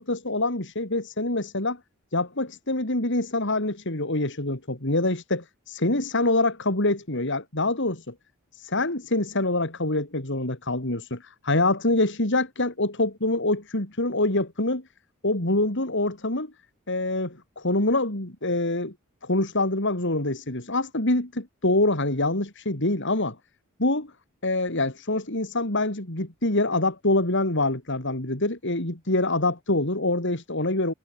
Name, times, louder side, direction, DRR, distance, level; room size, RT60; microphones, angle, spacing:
voice 1, 0.0-1.8 2.1-8.1 8.6-14.8 15.2-16.5 16.9-18.9 19.2-23.4 23.8-24.1 24.4-30.9, left 2 dB, 55° left, 4.0 m, -25 dB
head